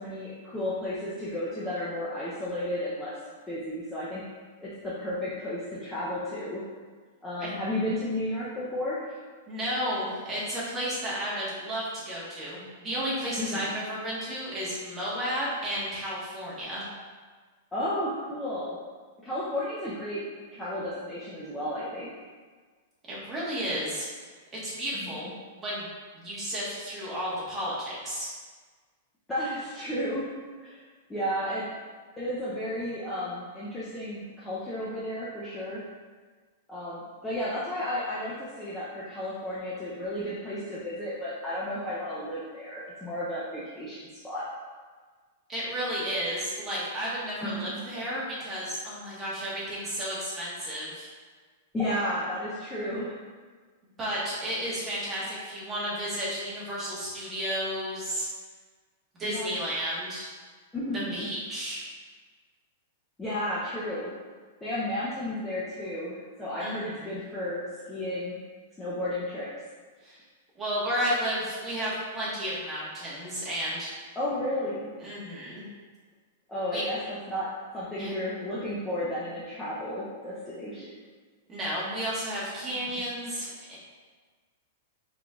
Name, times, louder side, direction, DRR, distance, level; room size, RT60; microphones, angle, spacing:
voice 1, 0.0-3.1 3.5-4.2 4.6-6.6 7.2-9.0 13.4-13.8 17.7-18.8 19.2-20.2 20.5-22.1 25.0-25.3 29.3-30.2 30.6-30.8 31.1-31.7 32.2-35.8 36.7-44.5 47.4-47.8 51.7-53.2 59.2-59.5 60.7-61.3 63.2-64.1 64.6-68.4 68.8-69.5 74.2-74.9 76.5-80.9, left 1 dB, 10° left, -9 dB, 0.6 m, -33 dB
voice 2, 9.5-16.8 23.1-24.1 24.5-25.3 25.6-25.9 26.1-28.3 45.5-51.1 54.0-58.3 59.2-60.3 61.1-61.9 66.6-67.1 70.0-70.2 70.5-73.9 75.0-75.6 76.7-76.8 78.0-78.1 81.5-83.8, equal, 10° right, -9 dB, 1.3 m, -32 dB
4.9 x 3.7 x 2.4 m, 1.5 s
supercardioid pair, 165°, 0 cm